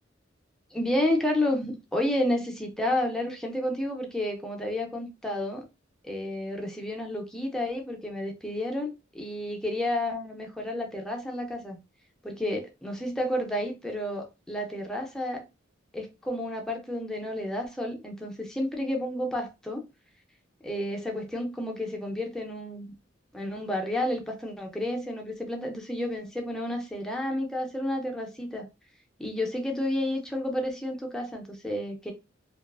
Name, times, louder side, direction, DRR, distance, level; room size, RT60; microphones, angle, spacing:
voice 1, 0.7-5.7 6.0-11.8 12.2-15.4 15.9-19.8 20.6-22.9 23.3-28.7 29.2-32.1, left 1 dB, 5° left, 0.5 m, -31 dB
2.4 x 2.3 x 2.3 m
head